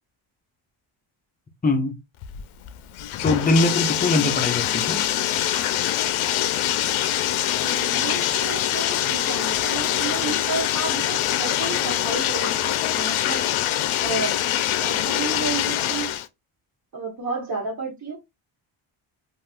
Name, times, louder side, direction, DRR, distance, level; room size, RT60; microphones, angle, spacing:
voice 1, 1.6-1.9 3.2-5.0, left 2 dB, 20° left, 0.5 m, -22 dB
Bathtub (filling or washing), 2.2-16.3, left 12 dB, 80° left, 0.6 m, -24 dB
voice 2, 7.6-13.4 14.0-14.4 14.8-16.1 16.9-18.2, right 4 dB, 45° right, 1.1 m, -31 dB
3.3 x 2.5 x 2.4 m
cardioid pair, 165°, 49 cm